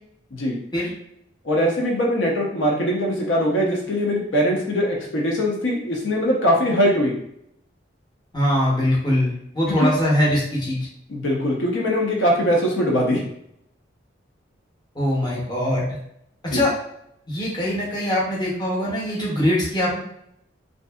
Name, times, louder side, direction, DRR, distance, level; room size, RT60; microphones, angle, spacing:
voice 1, 1.4-7.2 9.7-9.9 11.1-13.2 16.5-16.6, equal, 75° left, -2 dB, 0.7 m, -21 dB
voice 2, 8.3-10.9 14.9-15.9 16.4-16.7 17.3-20.0, left 1 dB, 20° left, -5 dB, 0.7 m, -22 dB
2.6 x 2.5 x 2.3 m, 0.75 s
head